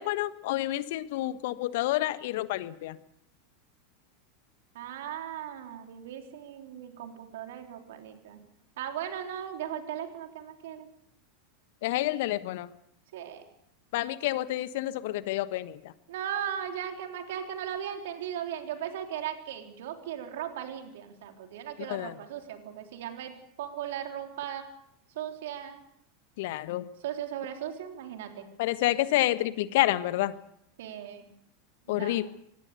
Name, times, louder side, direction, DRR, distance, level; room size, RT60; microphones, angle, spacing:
voice 1, 0.0-3.0 11.8-12.7 13.9-15.9 21.9-22.1 26.4-26.9 28.6-30.4 31.9-32.3, left 16 dB, 60° left, 14 dB, 1.3 m, -29 dB
voice 2, 4.7-8.4 8.8-10.9 13.1-13.4 16.1-24.7 25.1-25.8 27.0-28.5 30.8-31.3 31.9-32.2, right 10 dB, 65° right, 4 dB, 3.5 m, -37 dB
25.0 x 20.5 x 6.8 m, 0.72 s
figure-of-eight pair, 85°, 0 cm